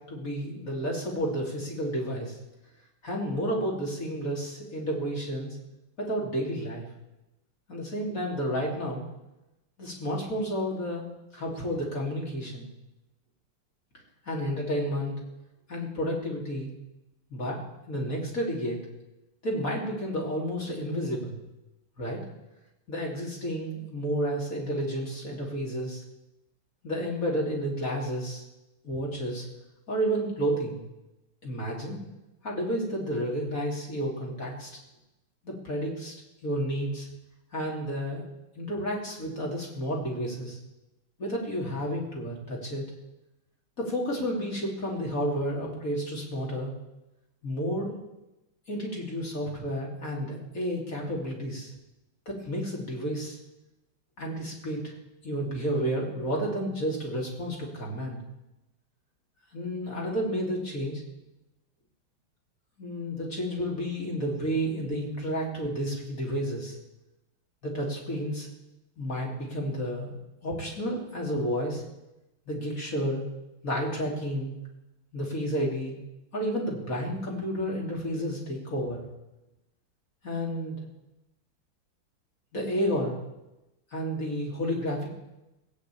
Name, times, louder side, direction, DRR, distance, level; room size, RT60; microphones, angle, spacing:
voice 1, 0.1-2.4 3.0-5.6 6.0-6.9 7.7-9.0 9.8-11.1 11.3-12.7 14.3-15.1 15.7-16.7 17.3-17.6 17.9-18.8 19.4-21.4 22.0-22.2 22.9-26.0 26.8-28.4 28.8-29.5 29.9-30.8 31.4-32.0 32.4-34.7 35.4-37.1 37.5-38.2 38.6-40.6 41.2-42.9 43.8-46.7 47.4-47.9 48.7-51.7 52.3-53.4 54.2-54.9 55.2-58.2 59.5-61.0 62.8-66.8 67.6-68.5 69.0-70.1 70.4-71.8 72.5-73.2 73.6-74.5 75.1-76.0 76.3-79.1 80.2-80.9 82.5-83.1 83.9-85.1, equal, 40° left, -2 dB, 3.6 m, -31 dB
17.5 x 8.7 x 8.6 m, 0.96 s
omnidirectional pair, 2.3 m